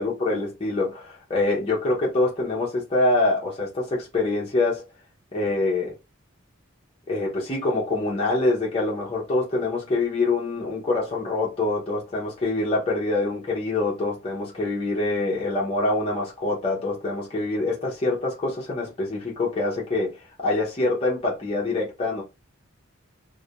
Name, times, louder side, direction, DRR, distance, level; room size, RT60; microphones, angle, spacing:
voice 1, 0.0-4.8 5.3-5.9 7.1-22.2, left 2 dB, 25° left, 0.5 m, -25 dB
2.3 x 2.0 x 2.8 m
head